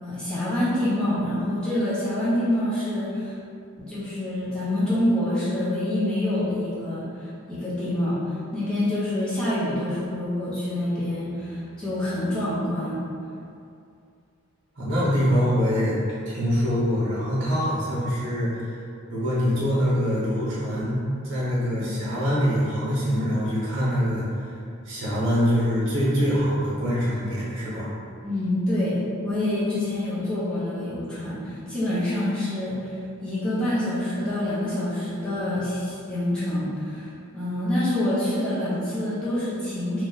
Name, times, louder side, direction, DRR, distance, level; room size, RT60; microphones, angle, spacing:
voice 1, 0.0-3.4 3.8-13.0 21.8-22.0 28.2-29.0 29.2-40.0, left 1 dB, 5° left, -12 dB, 1.0 m, -26 dB
voice 2, 14.8-18.7 19.1-21.0 21.2-24.5 24.8-27.9, equal, 55° right, -8 dB, 1.0 m, -24 dB
2.8 x 2.5 x 3.9 m, 2.4 s
head